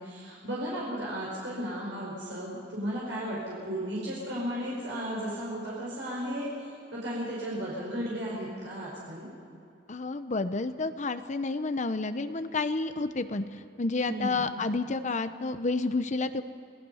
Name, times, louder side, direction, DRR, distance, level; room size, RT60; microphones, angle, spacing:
voice 1, 0.0-9.3 14.1-14.5, equal, 80° right, -6 dB, 5.5 m, -35 dB
voice 2, 9.9-16.4, left 3 dB, 40° left, 10 dB, 0.8 m, -30 dB
27.5 x 18.0 x 5.7 m, 2.6 s
head